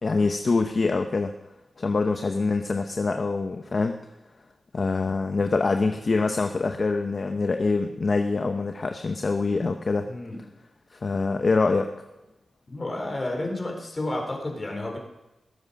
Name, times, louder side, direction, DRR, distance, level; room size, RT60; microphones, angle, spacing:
voice 1, 0.0-1.3 1.8-4.0 4.7-10.1 10.9-11.9, left 3 dB, 45° left, 6 dB, 0.8 m, -25 dB
voice 2, 10.0-10.4 12.7-15.0, left 1 dB, 30° left, 1 dB, 3.5 m, -31 dB
19.0 x 8.0 x 5.3 m, 1.0 s
wide cardioid pair, 85°, 0 cm